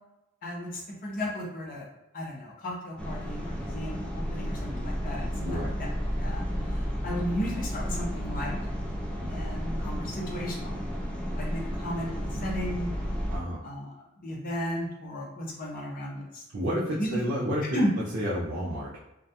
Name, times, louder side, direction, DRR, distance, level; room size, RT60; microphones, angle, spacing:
voice 1, 0.4-1.9 2.1-5.9 6.2-6.4 6.7-8.6 9.3-10.8 11.4-12.9 13.6-13.9 14.2-16.4 17.0-17.2 17.7-17.9, equal, 45° left, -3 dB, 0.6 m, -34 dB
sound 1, 3.0-13.4, equal, 5° left, 0.3 m, -32 dB
voice 2, 5.4-5.7 13.3-13.6 16.5-17.8 18.1-18.9, equal, 60° right, -5 dB, 0.4 m, -30 dB
2.4 x 2.1 x 2.7 m, 0.92 s
head